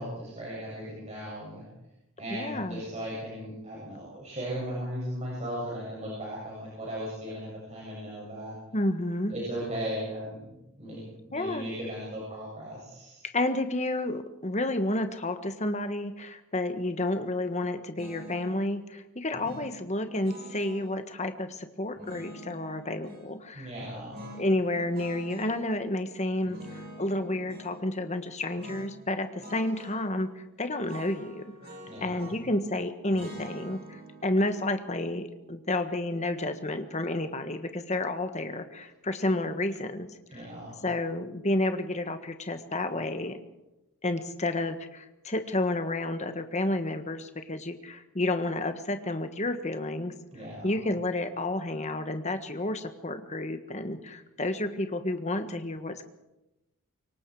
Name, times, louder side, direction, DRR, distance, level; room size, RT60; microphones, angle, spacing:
voice 1, 0.0-1.6 2.2-8.5 9.3-11.0 11.3-13.2 19.3-19.4 23.5-24.1 31.9-32.3 40.3-40.8 50.3-50.8, equal, 30° right, -5 dB, 7.7 m, -37 dB
voice 2, 2.3-2.8 8.7-9.3 11.3-11.7 13.2-23.7 24.4-31.4 32.0-40.4 40.8-43.4 44.0-50.1 50.6-56.0, left 1 dB, 30° left, 8 dB, 1.5 m, -30 dB
sound 1, 18.0-18.6 19.4-20.9 21.9-23.3 24.1-25.6 26.4-27.8 28.6-28.9 29.2-30.0 30.8-32.6 33.1-36.2, equal, 45° right, 6.1 m, -46 dB
26.0 x 23.0 x 4.9 m, 0.94 s
head